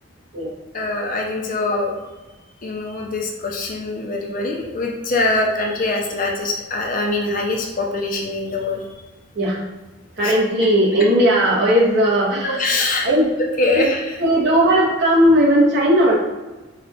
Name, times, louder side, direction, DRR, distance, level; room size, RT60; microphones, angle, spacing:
voice 1, 0.7-1.9 2.6-8.8 10.2-10.3 12.4-13.1 13.6-14.2, left 2 dB, 40° left, 0 dB, 0.5 m, -23 dB
voice 2, 10.2-12.7 13.0-13.3 13.7-13.9 14.2-16.2, equal, 55° right, -4 dB, 1.1 m, -16 dB
4.2 x 2.4 x 4.0 m, 1.2 s
head